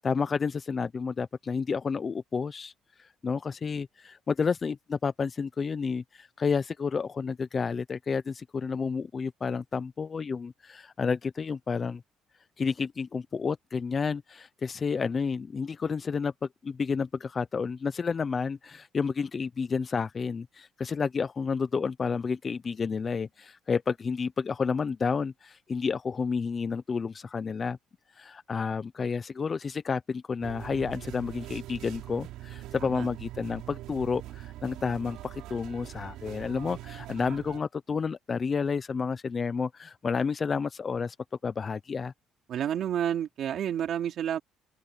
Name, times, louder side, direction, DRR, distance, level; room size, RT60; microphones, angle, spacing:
voice 1, 0.0-2.7 3.2-12.0 12.6-27.8 28.2-41.2 41.4-42.1, left 5 dB, 25° left, 0.4 m, -30 dB
sound 1, 30.4-37.6, right 15 dB, 75° right, 5.1 m, -42 dB
voice 2, 42.5-44.4, right 10 dB, 45° right, 3.7 m, -30 dB
open air
cardioid pair, 175°, 0 cm